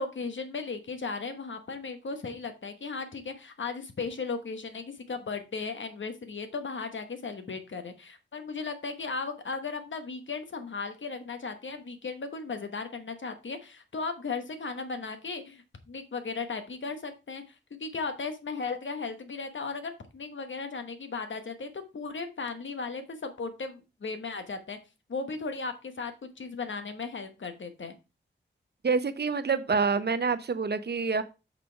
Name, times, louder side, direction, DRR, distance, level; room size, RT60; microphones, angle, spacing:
voice 1, 0.0-24.8 25.1-27.9, left 4 dB, 75° left, 8 dB, 1.2 m, -36 dB
voice 2, 28.8-31.2, right 5 dB, 55° right, 12 dB, 0.7 m, -27 dB
6.6 x 5.3 x 4.6 m, 0.28 s
wide cardioid pair, 100°, 20 cm